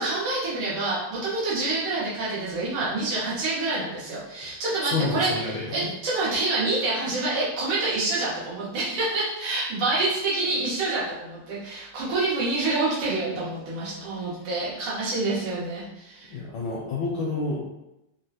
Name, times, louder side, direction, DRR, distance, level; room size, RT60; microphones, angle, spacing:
voice 1, 0.0-16.3, right 2 dB, 85° right, -8 dB, 1.9 m, -27 dB
voice 2, 4.9-5.6 16.2-17.6, left 3 dB, 70° left, -4 dB, 1.1 m, -28 dB
4.1 x 2.0 x 2.7 m, 0.90 s
omnidirectional pair, 2.4 m